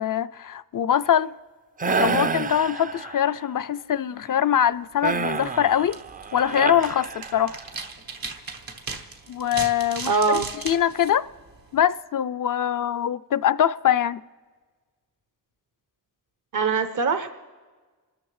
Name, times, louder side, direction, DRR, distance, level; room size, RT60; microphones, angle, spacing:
voice 1, 0.0-1.3 1.9-6.0 6.3-7.6 9.3-11.2 11.7-14.2, left 10 dB, 65° left, 0.5 m, -23 dB
sound 1, 1.8-3.4 5.0-7.7, right 5 dB, 25° right, 0.3 m, -28 dB
sound 2, 4.9-11.9, right 3 dB, 90° right, 1.3 m, -38 dB
voice 2, 10.1-10.5 16.5-17.3, right 5 dB, 65° right, 0.7 m, -22 dB
28.0 x 13.5 x 3.2 m
wide cardioid pair, 50°, 34 cm